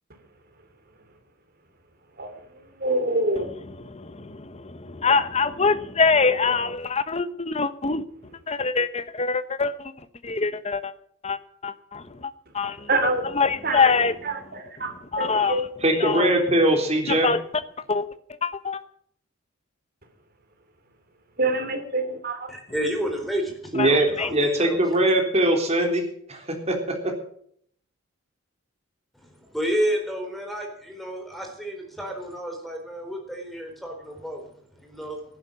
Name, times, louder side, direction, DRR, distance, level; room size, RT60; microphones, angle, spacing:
voice 1, 2.8-3.5 12.9-13.3 13.6-13.9 14.2-15.6 21.4-22.5, right 2 dB, 50° right, 7 dB, 3.0 m, -26 dB
voice 2, 3.8-8.0 8.5-9.9 10.2-10.9 11.2-12.9 13.2-14.2 15.1-15.6 15.9-16.3 17.1-17.4 17.9-18.1 18.4-18.8 23.8-23.9 24.2-24.3, left 4 dB, 30° left, 13 dB, 1.0 m, -24 dB
voice 3, 15.8-17.3 23.7-27.1, right 1 dB, 30° right, 3 dB, 3.7 m, -22 dB
voice 4, 22.5-25.1 29.1-35.2, equal, ahead, 3 dB, 3.9 m, -31 dB
15.0 x 11.5 x 7.1 m, 0.63 s
head